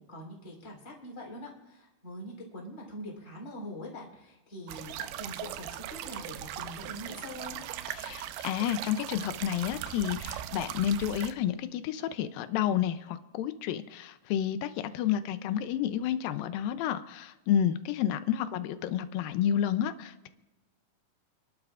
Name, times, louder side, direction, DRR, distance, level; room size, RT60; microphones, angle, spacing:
voice 1, 0.0-7.6, left 1 dB, 20° left, -2 dB, 3.4 m, -43 dB
sound 1, 4.7-11.3, right 12 dB, 85° right, 2.6 m, -39 dB
voice 2, 7.9-20.3, left 10 dB, 80° left, 11 dB, 2.2 m, -30 dB
29.0 x 11.5 x 2.5 m, 1.1 s
omnidirectional pair, 4.5 m